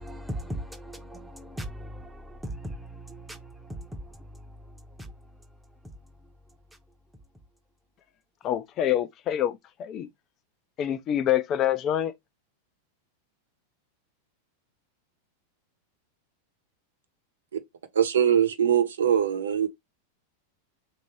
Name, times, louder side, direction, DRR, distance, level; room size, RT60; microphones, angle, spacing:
voice 1, 0.0-5.1, equal, 5° right, 0.8 m, -39 dB
voice 2, 8.4-10.1 10.8-12.1, left 11 dB, 40° left, 0.5 m, -26 dB
voice 3, 17.9-19.7, right 9 dB, 80° right, 0.9 m, -22 dB
3.4 x 2.7 x 3.2 m
hypercardioid pair, 105°, 0 cm